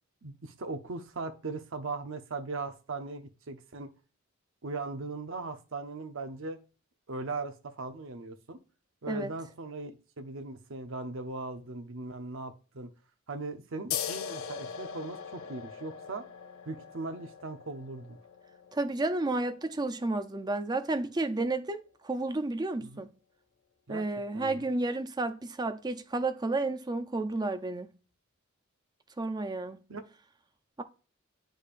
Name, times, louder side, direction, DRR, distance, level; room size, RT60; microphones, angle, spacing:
voice 1, 0.2-3.9 4.6-6.6 7.1-8.6 9.0-12.9 13.3-16.2 16.7-18.2 22.8-23.1 23.9-24.0 24.3-24.6 29.9-30.0, right 3 dB, 70° right, 0.8 m, -39 dB
sound 1, 13.9-21.0, left 8 dB, 75° left, 0.6 m, -41 dB
voice 2, 18.7-23.1 23.9-27.9 29.2-29.8 30.8-30.9, right 2 dB, 20° right, 0.5 m, -31 dB
8.4 x 5.2 x 2.5 m
head